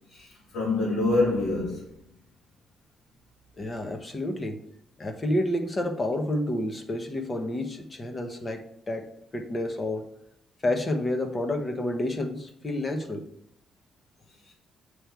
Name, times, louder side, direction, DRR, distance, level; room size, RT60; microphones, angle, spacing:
voice 1, 0.1-1.9 14.5-14.6, left 2 dB, 85° left, 1.8 m, -26 dB
voice 2, 3.6-4.6 5.0-10.0 10.6-13.2, left 1 dB, 30° left, 1.1 m, -29 dB
7.9 x 3.3 x 4.5 m
cardioid pair, 90°, 0 cm